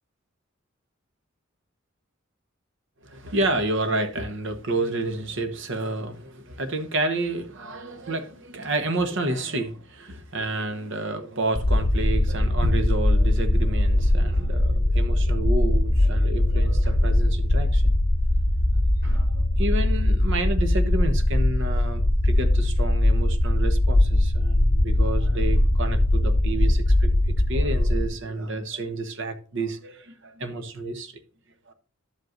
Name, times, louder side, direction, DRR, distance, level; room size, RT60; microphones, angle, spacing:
voice 1, 3.0-17.9 19.0-31.1 31.7-31.8, right 2 dB, 65° right, 1.1 m, -30 dB
the deep, 11.5-28.1, left 1 dB, 40° left, 1.0 m, -21 dB
11.5 x 7.8 x 2.5 m
head